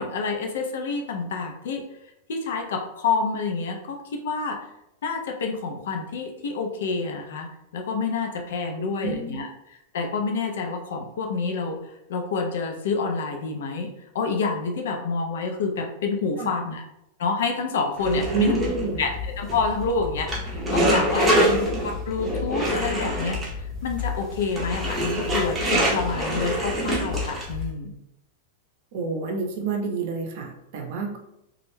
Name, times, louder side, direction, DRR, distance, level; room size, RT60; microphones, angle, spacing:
voice 1, 0.0-1.8 2.3-4.6 5.0-9.5 9.9-11.8 12.1-16.8 17.2-18.6 19.0-27.9, left 4 dB, 80° left, 3 dB, 0.5 m, -28 dB
voice 2, 8.7-9.4 16.4-16.5 18.1-19.0 21.3-21.4 28.9-31.2, right 4 dB, 55° right, 3 dB, 0.6 m, -28 dB
sound 1, 18.0-27.7, equal, 15° right, 0.6 m, -26 dB
2.3 x 2.1 x 3.1 m, 0.84 s
supercardioid pair, 145°, 0 cm